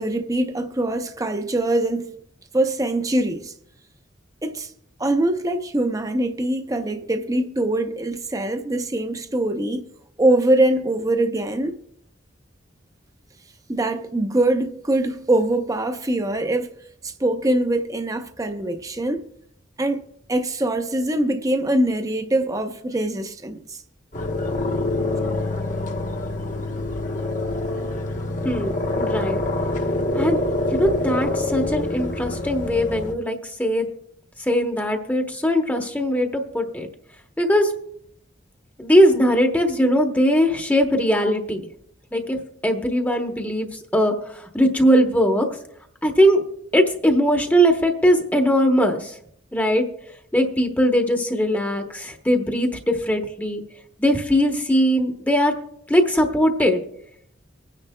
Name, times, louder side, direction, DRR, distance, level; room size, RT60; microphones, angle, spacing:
voice 1, 0.0-2.1 2.5-3.5 4.4-4.7 5.0-9.9 10.2-11.8 13.7-16.7 17.0-19.3 19.8-20.0 20.3-23.8, right 1 dB, 20° right, 0.7 m, -23 dB
sound 1, 24.1-33.1, left 2 dB, 40° left, 1.0 m, -26 dB
voice 2, 28.4-29.4 30.1-30.4 30.7-33.9 34.5-36.9 37.4-37.7 38.8-41.7 42.1-42.4 42.6-43.7 43.9-45.5 46.0-46.4 46.7-49.1 49.5-49.8 50.3-53.6 54.0-55.5 55.9-56.8, equal, 10° left, 0.9 m, -20 dB
24.5 x 9.8 x 2.2 m
head